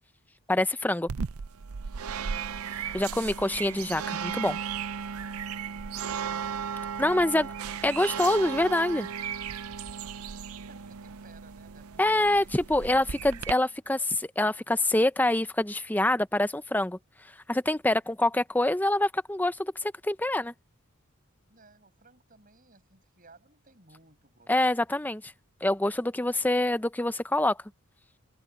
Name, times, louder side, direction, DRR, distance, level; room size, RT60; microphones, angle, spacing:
voice 1, 0.5-1.1 2.9-4.6 7.0-7.5 7.8-9.1 12.0-14.0 14.4-17.0 17.5-20.5 24.5-25.2 25.6-27.6, left 1 dB, 10° left, 0.6 m, -25 dB
sound 1, 1.1-13.5, right 7 dB, 80° right, 0.6 m, -35 dB
voice 2, 5.9-7.8 10.7-13.3 13.6-14.1 21.5-24.7, right 3 dB, 40° right, 7.9 m, -58 dB
head